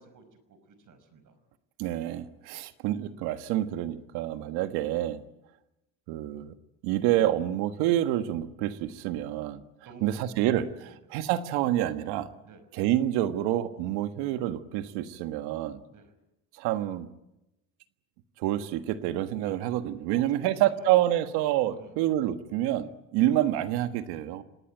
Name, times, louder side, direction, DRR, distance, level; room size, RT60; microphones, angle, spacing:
voice 1, 0.0-1.4 9.9-10.3 10.6-11.0 12.4-12.6 15.9-16.1 20.1-21.0 21.8-22.1, right 4 dB, 55° right, 11 dB, 5.5 m, -51 dB
voice 2, 1.8-5.2 6.1-6.5 6.8-9.6 10.0-12.3 12.7-15.8 16.6-17.1 18.4-24.4, right 13 dB, 85° right, 10 dB, 1.6 m, -28 dB
26.5 x 18.5 x 9.2 m, 0.92 s
supercardioid pair, 90°, 38 cm